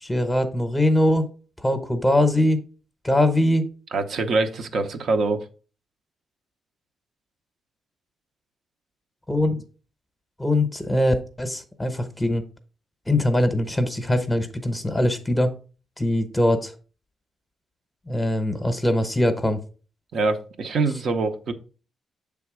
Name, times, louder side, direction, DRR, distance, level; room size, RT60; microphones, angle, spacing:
voice 1, 0.0-1.3 1.6-2.6 3.0-3.6 9.3-9.6 10.4-12.4 13.1-15.5 16.0-16.7 18.1-19.6, left 1 dB, 10° left, 8 dB, 0.9 m, -22 dB
voice 2, 3.9-5.5 20.1-21.5, right 3 dB, 65° right, 6 dB, 0.8 m, -24 dB
6.9 x 3.5 x 4.8 m, 0.38 s
cardioid pair, 85°, 0 cm